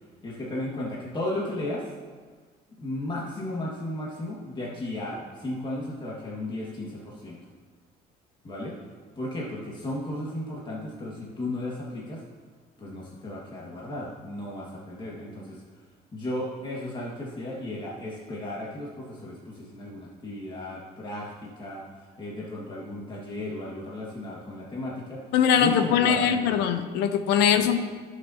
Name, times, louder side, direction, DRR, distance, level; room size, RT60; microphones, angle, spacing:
voice 1, 0.2-1.9 2.8-7.4 8.4-8.8 9.2-12.2 12.8-15.6 16.1-25.2 25.5-26.6 27.6-27.7, left 1 dB, 25° left, -5 dB, 1.9 m, -35 dB
voice 2, 25.3-27.8, left 8 dB, 90° left, 9 dB, 0.8 m, -22 dB
19.0 x 6.6 x 2.9 m, 1.5 s
cardioid pair, 110°, 17 cm